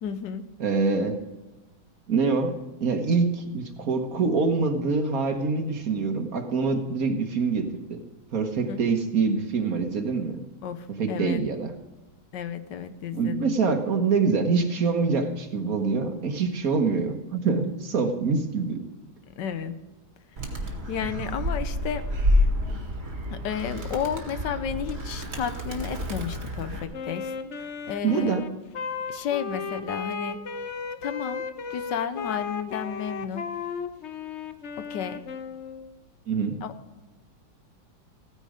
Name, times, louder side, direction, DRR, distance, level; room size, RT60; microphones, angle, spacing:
voice 1, 0.0-0.5 8.7-8.8 10.6-11.4 12.3-13.5 19.4-19.8 20.9-22.0 23.3-28.3 29.1-30.4 31.0-33.4 34.8-35.2 36.6-36.7, left 8 dB, 75° left, 11 dB, 1.5 m, -32 dB
voice 2, 0.6-1.2 2.1-2.5 2.8-8.0 8.3-10.4 11.0-11.7 13.1-18.8 28.0-28.5 36.3-36.6, right 4 dB, 55° right, 6 dB, 1.6 m, -25 dB
Animal, 20.4-26.8, left 1 dB, 35° right, 2.1 m, -28 dB
Wind instrument woodwind instrument, 26.9-35.9, left 6 dB, 50° left, 0.9 m, -35 dB
16.0 x 9.9 x 5.0 m, 1.1 s
omnidirectional pair, 1.9 m